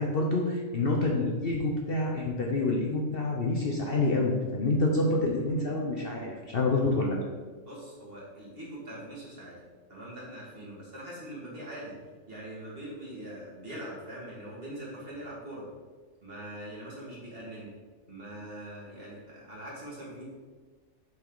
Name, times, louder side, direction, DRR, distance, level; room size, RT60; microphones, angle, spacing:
voice 1, 0.0-7.2, left 2 dB, 50° left, -1 dB, 0.9 m, -27 dB
voice 2, 7.6-9.6 9.9-12.0 12.3-15.6 16.2-17.7 18.1-20.3, right 1 dB, 40° right, -5 dB, 2.2 m, -42 dB
7.5 x 5.3 x 3.9 m, 1.4 s
omnidirectional pair, 1.5 m